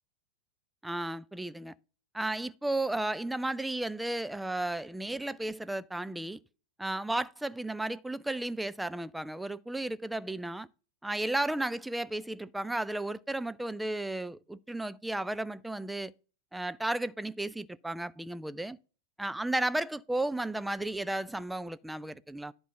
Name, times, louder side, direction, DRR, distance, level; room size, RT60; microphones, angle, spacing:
voice 1, 0.8-1.7 2.1-6.4 6.8-10.7 11.0-16.1 16.5-18.8 19.2-22.5, right 1 dB, 5° right, 0.4 m, -34 dB
11.0 x 3.8 x 5.6 m
figure-of-eight pair, 90°, 0 cm